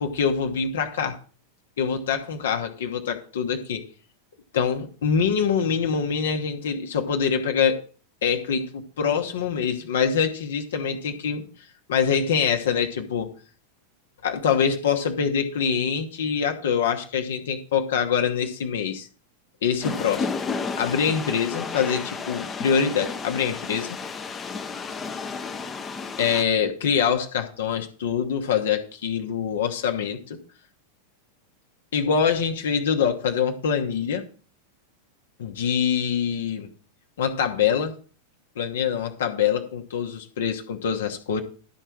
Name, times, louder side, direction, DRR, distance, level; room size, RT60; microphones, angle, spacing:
voice 1, 0.0-1.2 1.8-3.8 4.5-7.8 8.2-11.5 11.9-13.3 14.2-19.1 19.6-20.3 20.8-24.0 26.2-30.4 31.9-34.2 35.4-36.7 37.2-37.9 38.6-41.4, left 7 dB, 60° left, 5 dB, 1.1 m, -24 dB
sound 1, 19.8-26.4, left 5 dB, 20° left, 0.8 m, -32 dB
12.0 x 4.5 x 6.2 m, 0.40 s
figure-of-eight pair, 90°, 0 cm